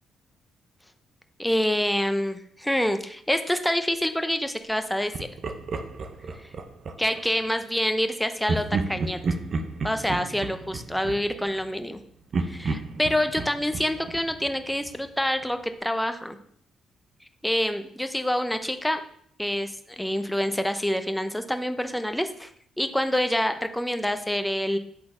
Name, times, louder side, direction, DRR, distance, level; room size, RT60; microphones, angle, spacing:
voice 1, 1.4-5.3 6.4-6.5 7.0-9.2 9.8-12.0 12.4-16.4 17.4-19.0 19.4-22.5 22.8-24.8, equal, 5° left, 8 dB, 0.6 m, -27 dB
Laughter, 5.1-7.3 8.4-11.9 12.3-15.1, right 3 dB, 50° right, 0.6 m, -32 dB
8.0 x 3.9 x 3.8 m, 0.64 s
cardioid pair, 90°, 0 cm